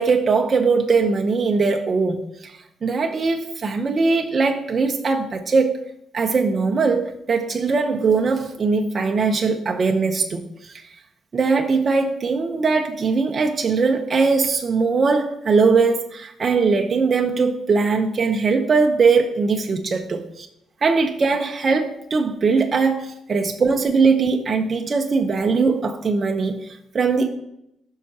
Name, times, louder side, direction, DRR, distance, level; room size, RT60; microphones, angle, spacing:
voice 1, 0.0-5.7 6.1-10.8 11.3-20.5 20.8-27.3, right 4 dB, 40° right, 3 dB, 0.9 m, -20 dB
14.5 x 5.7 x 2.9 m, 0.80 s
cardioid pair, 90°, 0 cm